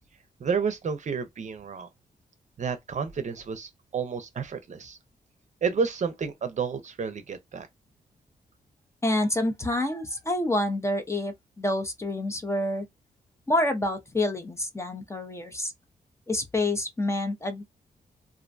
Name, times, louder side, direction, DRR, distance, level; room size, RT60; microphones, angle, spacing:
voice 1, 0.4-1.9 2.6-5.0 5.6-7.7, right 5 dB, 50° right, 0.6 m, -30 dB
voice 2, 9.0-12.9 13.5-15.7 16.3-17.6, left 1 dB, 15° left, 0.6 m, -27 dB
2.5 x 2.1 x 2.5 m
cardioid pair, 80°, 16 cm